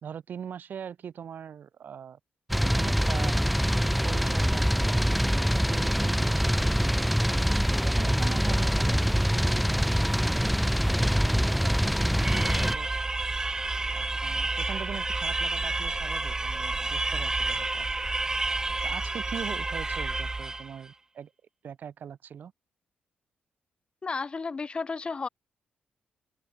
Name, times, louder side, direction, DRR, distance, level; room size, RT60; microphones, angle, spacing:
voice 1, 0.0-2.2 2.6-3.4 4.0-5.3 5.7-7.0 7.7-12.9 13.9-17.9 18.8-21.3 21.6-22.5, right 8 dB, 55° right, 3.3 m, -41 dB
sound 1, 2.5-12.7, equal, ahead, 1.2 m, -24 dB
sound 2, 12.2-20.8, right 3 dB, 15° right, 1.3 m, -30 dB
voice 2, 24.0-25.3, left 4 dB, 25° left, 4.7 m, -32 dB
cardioid pair, 140°, 4 cm